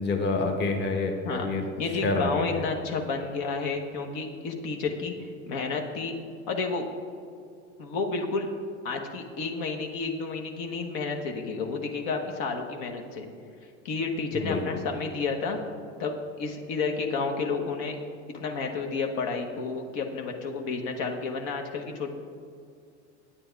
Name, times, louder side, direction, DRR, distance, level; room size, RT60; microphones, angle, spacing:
voice 1, 0.0-1.6 2.0-2.6 14.3-14.8, left 3 dB, 30° left, 3 dB, 1.2 m, -28 dB
voice 2, 1.8-6.1 6.5-6.9 7.8-8.5 8.8-13.3 13.8-15.6 16.0-18.0 18.3-22.1, left 4 dB, 65° left, 2 dB, 1.3 m, -31 dB
9.0 x 9.0 x 4.6 m, 2.4 s
supercardioid pair, 115°, 35 cm